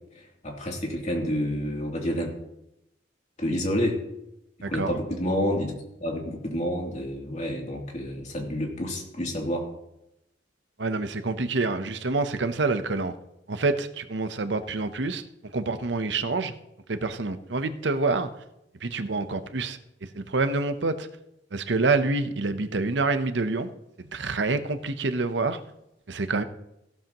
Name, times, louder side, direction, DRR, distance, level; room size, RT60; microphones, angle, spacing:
voice 1, 0.2-2.3 3.4-4.0 4.7-5.7 6.0-9.7, equal, 40° left, -1 dB, 2.9 m, -29 dB
voice 2, 4.6-4.9 10.8-13.1 13.5-15.2 15.5-16.5 16.9-18.3 18.8-19.8 20.1-21.1 21.5-23.7 24.0-25.6 26.1-26.4, right 3 dB, 75° right, 10 dB, 0.9 m, -27 dB
15.5 x 13.0 x 3.0 m, 0.84 s
head